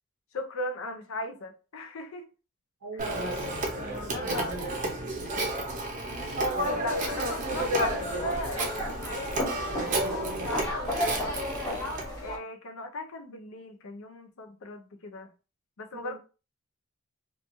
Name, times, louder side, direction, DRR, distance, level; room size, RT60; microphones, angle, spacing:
voice 1, 0.3-2.3 3.8-4.5 6.6-11.4 12.2-15.3 15.8-16.2, left 2 dB, 70° left, 0.5 m, -38 dB
voice 2, 2.8-3.3 4.2-5.5 15.9-16.2, right 4 dB, 90° right, 0.7 m, -42 dB
Telephone, 3.0-12.1, right 1 dB, 35° right, 0.5 m, -31 dB
sound 1, 6.2-12.4, equal, 15° left, 0.8 m, -35 dB
2.9 x 2.3 x 2.6 m
head